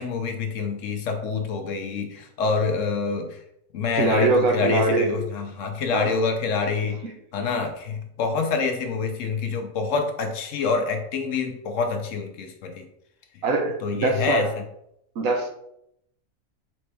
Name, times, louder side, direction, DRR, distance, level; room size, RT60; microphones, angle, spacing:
voice 1, 0.0-3.4 3.7-7.0 7.3-12.8 13.8-14.5, left 4 dB, 70° left, 5 dB, 1.0 m, -26 dB
voice 2, 4.0-5.1 5.9-6.2 7.6-7.7 13.4-14.5 15.2-15.5, right 3 dB, 80° right, 3 dB, 1.3 m, -23 dB
4.2 x 3.5 x 3.3 m, 0.76 s
omnidirectional pair, 1.4 m